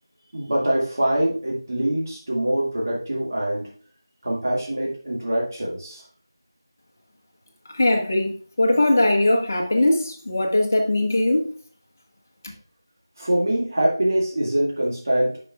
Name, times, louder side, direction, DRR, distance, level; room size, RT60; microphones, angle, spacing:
voice 1, 0.3-3.7 4.2-6.0 13.2-15.4, right 1 dB, 45° right, 2.0 m, -24 dB
voice 2, 7.7-11.5, left 1 dB, 35° left, 1.2 m, -20 dB
10.5 x 5.3 x 2.4 m
figure-of-eight pair, 170°, 2 cm